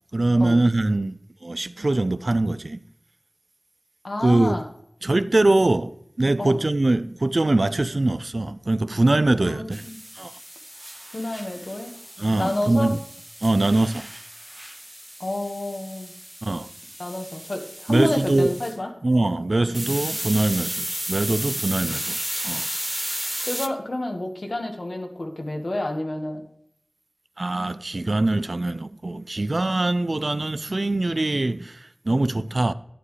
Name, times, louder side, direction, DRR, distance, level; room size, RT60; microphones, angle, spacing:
voice 1, 0.1-2.8 4.2-4.6 5.0-9.8 10.2-10.4 12.2-13.0 13.4-14.1 16.4-16.7 17.9-18.5 19.0-22.2 22.4-22.7 27.4-32.7, right 2 dB, 65° right, 0.4 m, -22 dB
voice 2, 4.0-4.6 6.4-6.6 9.4-10.0 11.1-12.0 12.4-12.9 15.2-16.1 17.0-18.9 23.4-26.4, left 1 dB, 70° left, 1.5 m, -29 dB
sound 1, 9.7-18.8 19.7-23.7, right 1 dB, 15° right, 0.6 m, -34 dB
11.0 x 9.5 x 3.2 m
wide cardioid pair, 40°, 0 cm